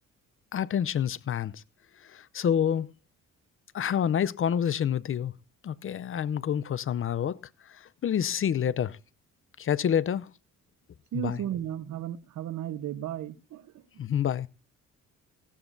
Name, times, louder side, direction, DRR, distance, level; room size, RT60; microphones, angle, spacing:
voice 1, 0.5-1.6 2.0-2.9 3.7-5.3 5.6-7.4 7.7-9.0 9.6-10.3 11.1-11.4 14.0-14.5, left 9 dB, 45° left, 0.6 m, -28 dB
voice 2, 11.1-13.7, right 11 dB, 70° right, 1.0 m, -34 dB
16.0 x 13.0 x 2.6 m
cardioid pair, 90°, 30 cm